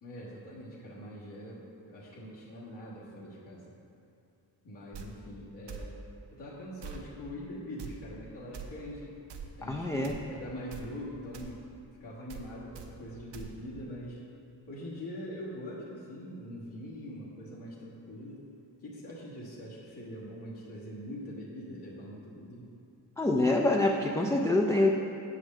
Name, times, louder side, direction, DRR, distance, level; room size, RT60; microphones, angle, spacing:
voice 1, 0.0-3.7 4.6-6.0 6.3-9.2 9.6-11.6 12.0-14.2 14.7-18.4 18.8-22.7, equal, 70° left, -9 dB, 1.6 m, -43 dB
sound 1, 4.9-5.1 5.7-5.9 6.8-7.0 7.8-7.9 8.5-8.7 9.3-9.5 10.0-10.2 10.7-10.9 11.3-11.5 12.3-12.5 12.7-12.9 13.3-13.5, right 6 dB, 75° right, 0.8 m, -42 dB
voice 2, 9.6-10.2 23.2-24.9, left 2 dB, 10° left, 1 dB, 0.3 m, -26 dB
7.3 x 4.9 x 6.5 m, 2.6 s
wide cardioid pair, 115°, 43 cm